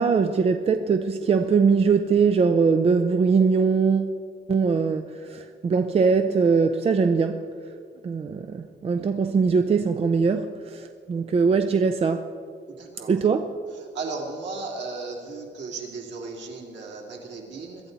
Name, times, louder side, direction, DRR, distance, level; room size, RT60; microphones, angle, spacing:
voice 1, 0.0-4.1 4.5-5.0 5.3-7.4 8.0-12.3 13.1-13.5, right 5 dB, 30° right, 0.5 m, -21 dB
voice 2, 13.9-17.8, right 3 dB, 65° right, 2.8 m, -35 dB
21.5 x 13.0 x 4.0 m
wide cardioid pair, 175°, 20 cm